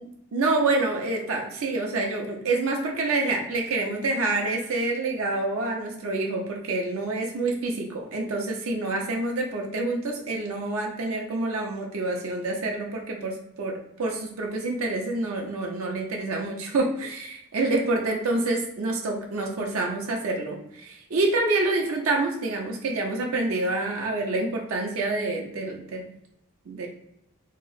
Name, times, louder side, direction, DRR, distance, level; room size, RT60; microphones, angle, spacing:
voice 1, 0.0-26.0 26.7-26.9, right 2 dB, 80° right, 0 dB, 0.6 m, -27 dB
2.9 x 2.0 x 3.9 m, 0.78 s
head